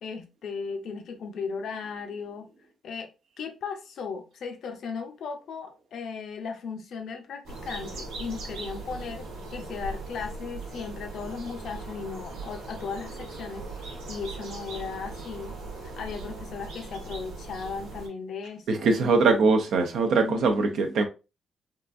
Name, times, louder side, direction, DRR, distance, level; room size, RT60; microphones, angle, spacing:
voice 1, 0.0-2.5 2.8-3.1 3.4-15.6 15.8-19.5 20.2-20.9, left 5 dB, 70° left, 0.7 m, -37 dB
sound 1, 7.4-18.1, right 2 dB, 90° right, 1.1 m, -39 dB
voice 2, 18.7-21.0, right 4 dB, 70° right, 0.6 m, -22 dB
3.7 x 2.4 x 2.5 m
supercardioid pair, 65°, 0 cm